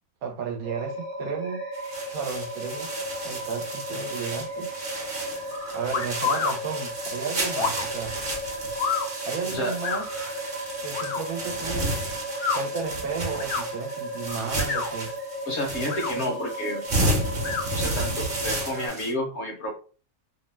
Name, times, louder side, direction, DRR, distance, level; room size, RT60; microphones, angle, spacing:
voice 1, 0.2-1.6 2.1-2.9 3.2-4.7 5.7-8.1 9.2-10.1 10.8-11.9 12.5-15.1, right 6 dB, 80° right, 1.0 m, -33 dB
sound 1, 0.6-18.9, right 1 dB, 20° left, 0.4 m, -35 dB
sound 2, 1.7-19.1, right 1 dB, 45° right, 0.9 m, -32 dB
sound 3, 5.9-6.6 7.5-7.9 8.8-9.1 9.8-10.0 10.9-11.2 12.3-12.6 13.3-13.6 14.5-14.9 15.8-16.1 17.4-17.7, left 5 dB, 80° left, 1.0 m, -28 dB
voice 2, 15.5-16.8 17.7-19.7, equal, 55° left, 0.9 m, -30 dB
2.7 x 2.1 x 3.1 m
omnidirectional pair, 1.5 m